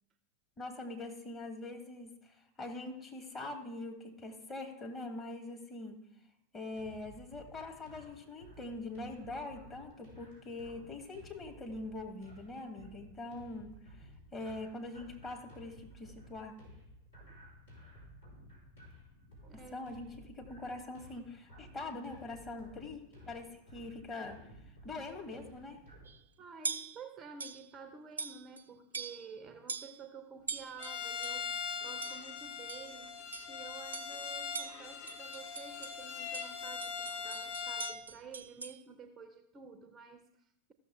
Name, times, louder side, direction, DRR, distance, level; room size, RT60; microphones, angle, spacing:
voice 1, 0.6-6.0 6.5-16.5 19.5-23.0 23.2-24.5 24.8-25.8, left 2 dB, 20° left, 2 dB, 1.6 m, -43 dB
sound 1, 6.7-26.1, equal, 75° left, 4.5 m, -55 dB
voice 2, 19.5-19.9 26.4-40.7, right 5 dB, 25° right, 9 dB, 0.6 m, -51 dB
sound 2, 26.0-26.2 26.6-27.0 27.4-27.7 28.2-28.6 28.9-29.3 29.7-30.0 30.5-31.5 32.0-32.3 32.7-32.9 33.3-33.6 33.9-34.2 34.5-36.0 36.3-38.8, right 5 dB, 75° right, 0.5 m, -42 dB
Bowed string instrument, 30.8-38.0, left 6 dB, 45° left, 0.7 m, -41 dB
14.5 x 6.4 x 3.6 m, 0.78 s
figure-of-eight pair, 90°, 0 cm